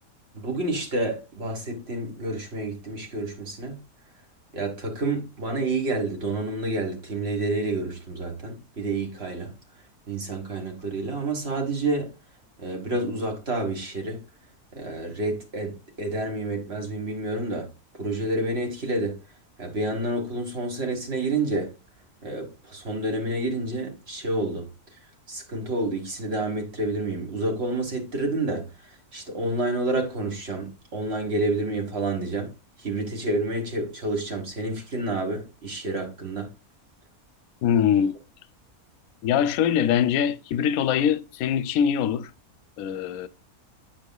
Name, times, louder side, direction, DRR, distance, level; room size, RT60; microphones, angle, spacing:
voice 1, 0.3-3.8 4.5-9.5 10.1-12.1 12.6-14.2 14.7-17.7 17.9-19.2 19.6-21.7 22.2-24.7 25.3-28.7 29.1-32.5 32.8-36.5, right 2 dB, 45° right, 1.8 m, -29 dB
voice 2, 37.6-38.2 39.2-42.3 42.8-43.3, left 8 dB, 75° left, 1.0 m, -23 dB
8.1 x 6.5 x 2.3 m
omnidirectional pair, 1.6 m